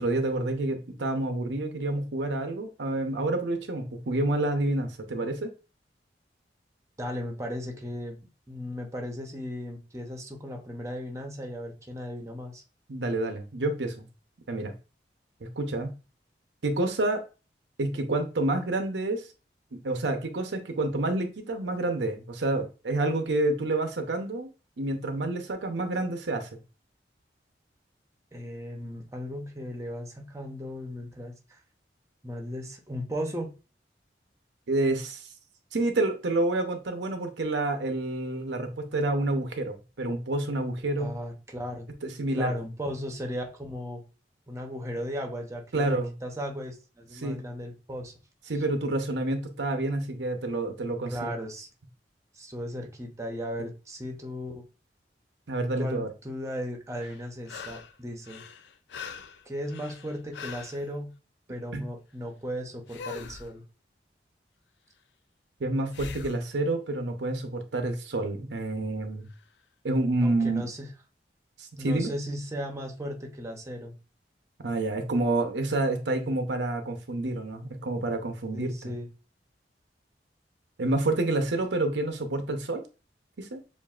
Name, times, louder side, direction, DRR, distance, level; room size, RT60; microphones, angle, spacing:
voice 1, 0.0-5.5 12.9-14.1 14.5-14.7 15.4-15.9 16.6-17.2 17.8-19.3 19.7-24.5 24.8-26.6 34.7-35.3 35.7-41.1 42.0-42.5 45.7-46.1 47.2-47.5 48.5-51.3 55.5-56.1 61.7-61.8 65.6-69.2 69.8-70.6 71.6-72.1 74.6-78.9 80.8-82.8 83.4-83.6, right 2 dB, 90° right, 6 dB, 0.8 m, -28 dB
voice 2, 7.0-8.2 8.5-12.6 28.3-31.6 32.2-33.5 41.0-41.9 42.3-44.0 44.5-48.1 51.1-51.7 52.3-54.6 55.8-58.4 59.5-61.1 61.5-63.6 70.2-70.9 71.8-74.0 78.5-79.1, equal, 15° right, 2 dB, 0.8 m, -36 dB
sound 1, 57.0-58.0 58.2-60.8 62.9-63.5 65.9-66.4 69.3-69.4, left 5 dB, 85° left, 0.4 m, -42 dB
7.1 x 2.6 x 2.4 m, 0.32 s
head